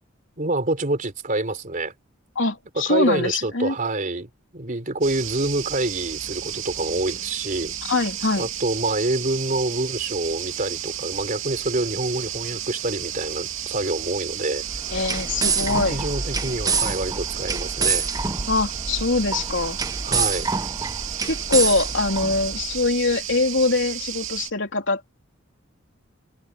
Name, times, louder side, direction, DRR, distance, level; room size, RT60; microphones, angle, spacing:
voice 1, 0.4-1.9 2.8-7.8 8.4-14.6 15.6-18.1 20.0-20.5, right 2 dB, 40° right, 3.6 m, -27 dB
voice 2, 2.4-3.7 7.9-8.5 14.9-16.0 18.5-19.8 21.3-25.1, left 3 dB, 65° left, 3.6 m, -23 dB
sound 1, 5.0-24.5, right 11 dB, 70° right, 2.7 m, -33 dB
sound 2, 14.6-22.8, right 4 dB, 20° right, 0.9 m, -27 dB
head